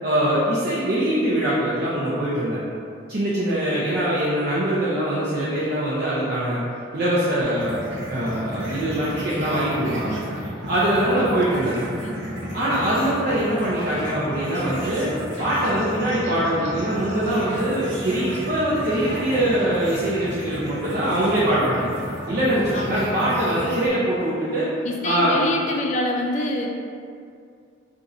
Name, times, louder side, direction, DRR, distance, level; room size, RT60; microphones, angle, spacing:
voice 1, 0.0-2.6 3.1-6.6 6.9-7.8 8.1-10.2 10.7-11.8 12.5-15.1 15.4-21.9 22.3-24.7 25.0-25.4, right 1 dB, 55° right, -8 dB, 0.5 m, -23 dB
sound 1, 7.5-23.9, equal, 85° right, 0.8 m, -33 dB
voice 2, 22.7-23.1 24.8-26.7, left 2 dB, 40° left, 1 dB, 0.3 m, -26 dB
2.5 x 2.5 x 4.1 m, 2.4 s
head